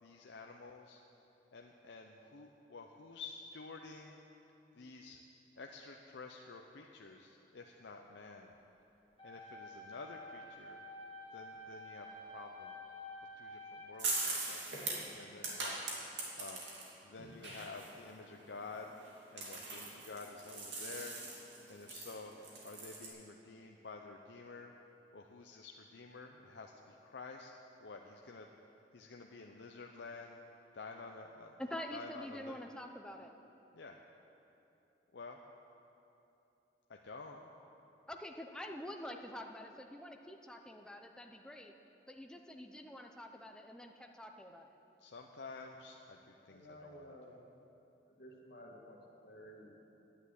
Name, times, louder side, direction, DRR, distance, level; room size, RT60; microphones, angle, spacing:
voice 1, 0.0-1.0 1.5-4.2 4.7-5.2 5.6-8.5 9.2-10.8 11.3-12.8 13.4-14.7 15.2-15.8 16.4-16.6 17.0-18.9 19.3-21.2 21.7-22.3 22.6-24.7 25.1-27.5 27.8-28.5 28.9-30.4 30.7-31.6 31.9-32.6 33.7-34.0 35.1-35.4 36.9-37.5 45.0-47.1, left 3 dB, 75° left, 2 dB, 0.6 m, -50 dB
sound 1, 9.2-14.2, left 1 dB, 30° left, 1.9 m, -50 dB
sound 2, 14.0-16.9 17.2-23.1, right 3 dB, 80° right, 2.5 m, -41 dB
voice 2, 31.6-33.3 38.1-41.7 42.1-44.7, left 1 dB, 5° left, 3 dB, 0.6 m, -47 dB
voice 3, 46.5-47.4 48.2-49.7, equal, 60° left, -1 dB, 2.0 m, -54 dB
10.5 x 9.8 x 8.3 m, 3.0 s
head